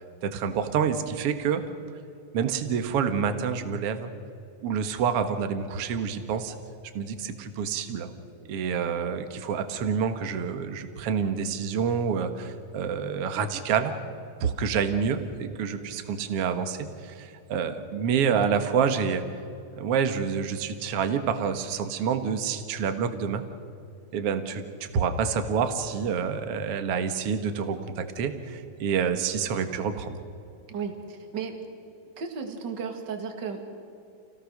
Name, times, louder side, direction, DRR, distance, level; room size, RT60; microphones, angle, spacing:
voice 1, 0.2-1.7 2.3-4.1 4.6-6.5 6.9-8.1 8.5-14.0 14.4-19.2 19.8-23.4 24.1-30.2, right 6 dB, 55° right, 8 dB, 1.9 m, -28 dB
voice 2, 30.7-31.6 32.2-33.6, right 6 dB, 35° right, 4 dB, 2.4 m, -34 dB
29.5 x 17.0 x 6.6 m, 2.7 s
omnidirectional pair, 4.1 m